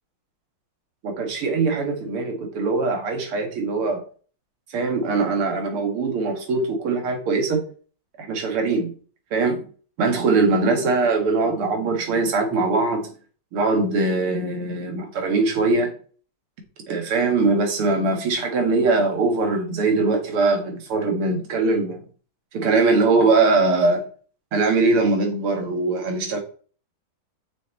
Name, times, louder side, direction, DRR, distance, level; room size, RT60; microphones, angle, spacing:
voice 1, 1.0-4.0 4.7-7.7 8.2-8.9 9.3-9.7 10.0-13.1 13.5-15.9 16.9-22.0 22.5-24.0 24.5-26.4, right 3 dB, 90° right, 4 dB, 2.7 m, -21 dB
6.4 x 6.2 x 4.2 m, 0.41 s
omnidirectional pair, 2.3 m